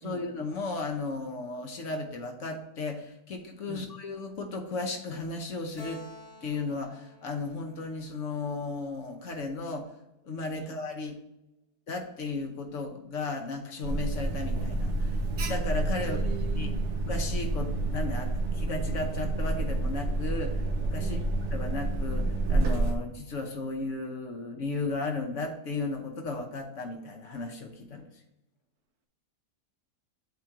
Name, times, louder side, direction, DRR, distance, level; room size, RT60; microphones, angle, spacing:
voice 1, 0.0-6.0 6.4-9.9 10.2-11.2 11.9-15.2 15.4-16.7 17.0-21.2 21.5-28.1, left 3 dB, 55° left, 4 dB, 1.0 m, -35 dB
Keyboard (musical), 5.8-9.2, left 3 dB, 40° left, 1.5 m, -51 dB
Alarm, 13.8-22.9, right 2 dB, 55° right, 0.9 m, -29 dB
voice 2, 16.0-16.9 21.0-21.4, right 8 dB, 70° right, 8 dB, 1.1 m, -42 dB
8.1 x 3.1 x 4.8 m, 0.87 s
omnidirectional pair, 1.8 m